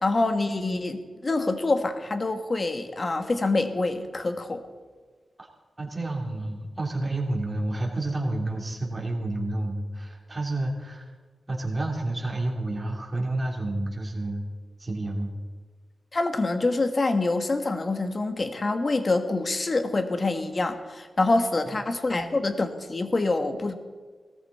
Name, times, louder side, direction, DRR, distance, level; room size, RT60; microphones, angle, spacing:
voice 1, 0.0-4.6 16.1-23.7, left 2 dB, 40° left, 8 dB, 1.5 m, -26 dB
voice 2, 5.8-11.1 11.5-14.5 14.8-15.3 21.7-21.8, right 2 dB, 25° right, -1 dB, 3.4 m, -30 dB
18.5 x 14.0 x 4.3 m, 1.5 s
cardioid pair, 75°, 0 cm